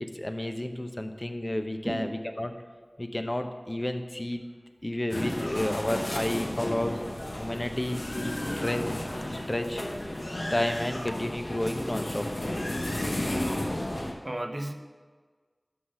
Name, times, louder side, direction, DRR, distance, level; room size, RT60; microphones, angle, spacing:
voice 1, 0.0-2.5 3.0-4.4 4.8-7.0 7.4-8.3 8.6-9.0 9.3-9.9 10.5-12.3, left 1 dB, 35° left, 6 dB, 0.8 m, -31 dB
voice 2, 1.8-2.2 13.1-13.4 14.2-14.7, right 1 dB, 40° right, 6 dB, 0.8 m, -35 dB
sound 1, 5.1-14.1, left 1 dB, 70° left, 1.1 m, -33 dB
12.0 x 4.0 x 6.4 m, 1.5 s
wide cardioid pair, 40°, 0 cm